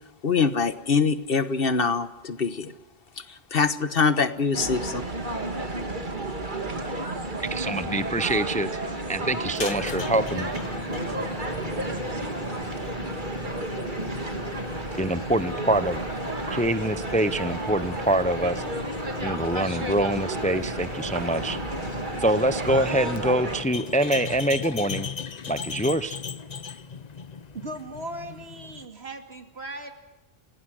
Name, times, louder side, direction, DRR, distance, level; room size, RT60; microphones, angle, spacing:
voice 1, 0.2-2.7 3.2-5.0, left 5 dB, 60° left, 12 dB, 1.4 m, -24 dB
sound 1, 4.5-23.6, right 2 dB, 50° right, 2.4 m, -32 dB
voice 2, 7.5-10.5 15.0-16.0 16.5-18.6 19.2-21.6 22.2-25.1 25.5-26.2, right 1 dB, 10° left, 13 dB, 0.6 m, -25 dB
sound 2, 9.5-28.9, left 5 dB, 45° left, 0.9 m, -37 dB
voice 3, 27.5-29.9, right 1 dB, 75° right, 6 dB, 2.7 m, -38 dB
27.5 x 18.0 x 6.3 m, 1.1 s
omnidirectional pair, 1.1 m